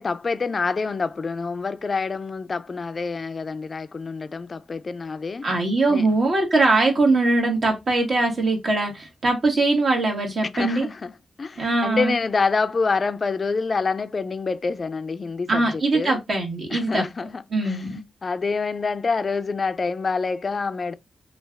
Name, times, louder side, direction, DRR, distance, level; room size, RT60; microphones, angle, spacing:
voice 1, 0.0-5.5 5.9-6.1 10.5-11.1 11.4-16.2 16.7-17.8 18.2-20.9, left 4 dB, 50° left, 0.4 m, -27 dB
voice 2, 5.4-10.9 11.6-12.2 15.5-17.1 17.5-18.0, right 2 dB, 60° right, 1.5 m, -21 dB
3.2 x 2.4 x 3.4 m
cardioid pair, 55°, 0 cm